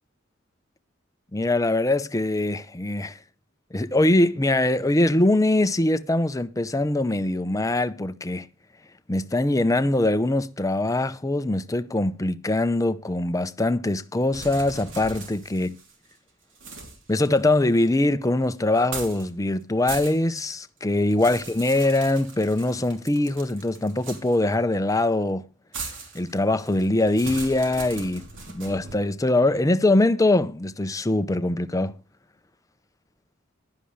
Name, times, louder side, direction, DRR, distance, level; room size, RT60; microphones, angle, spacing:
voice 1, 1.3-3.2 3.7-8.5 9.1-15.7 17.1-25.5 26.1-32.0, left 2 dB, 15° left, 0.6 m, -23 dB
sound 1, 14.3-16.1 16.6-18.0 18.8-19.3 19.6-20.4 20.8-24.6 25.7-29.0, right 4 dB, 70° right, 3.2 m, -39 dB
15.0 x 11.5 x 3.2 m
head